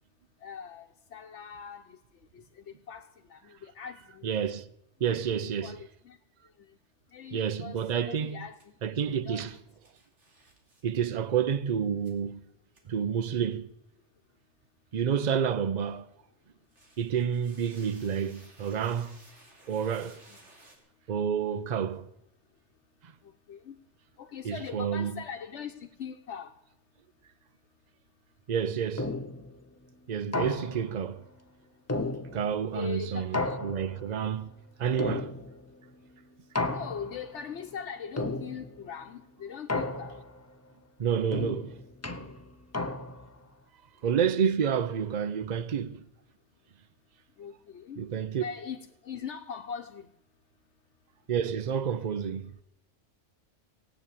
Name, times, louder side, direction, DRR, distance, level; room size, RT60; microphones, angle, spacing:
voice 1, 0.4-2.0 2.3-4.4 5.2-6.2 6.6-6.7 7.1-8.6 9.0-9.6 17.1-17.2 20.3-20.4 23.5-23.8 24.2-26.6 32.7-33.4 36.7-40.2 47.4-48.0 48.3-50.1, left 7 dB, 75° left, 1.1 m, -41 dB
voice 2, 4.2-4.7 5.0-5.8 7.3-8.4 8.8-9.6 10.8-12.4 12.9-13.7 14.9-16.1 17.0-19.2 19.7-20.2 21.1-22.1 23.0-23.1 24.4-25.2 28.5-29.1 30.1-31.3 32.3-34.5 34.8-35.3 41.0-41.8 44.0-46.1 48.0-48.4 51.3-52.5, right 8 dB, 45° right, 0.7 m, -29 dB
sound 1, 8.6-8.7 9.8-10.8 12.0-12.1 12.7-12.8 16.6-20.8, right 2 dB, 80° right, 3.2 m, -57 dB
sound 2, 29.0-29.5 30.3-31.0 31.9-32.7 33.3-34.1 35.0-35.7 36.6-37.3 38.2-38.8 39.7-40.4 41.3-43.4, left 2 dB, 20° left, 0.5 m, -33 dB
16.5 x 9.0 x 8.3 m
omnidirectional pair, 1.2 m